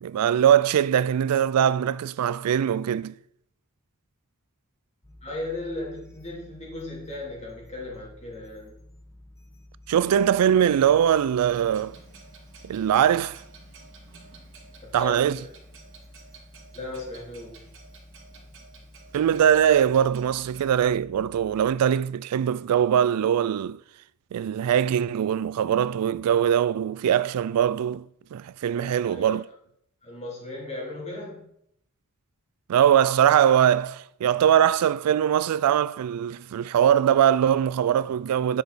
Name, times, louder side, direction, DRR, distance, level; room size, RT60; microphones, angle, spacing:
voice 1, 0.0-3.2 9.9-11.9 12.6-13.4 14.9-15.4 19.1-23.8 24.3-28.0 28.3-29.5 32.7-38.6, right 9 dB, 85° right, 0.3 m, -22 dB
sound 1, 5.0-21.8, left 1 dB, 15° left, 1.0 m, -51 dB
voice 2, 5.2-8.8 14.8-15.5 16.7-17.7 28.7-29.4 30.0-31.4, left 2 dB, 30° left, 3.3 m, -36 dB
Clock, 11.4-20.6, right 4 dB, 60° right, 2.2 m, -52 dB
9.6 x 6.5 x 4.1 m
head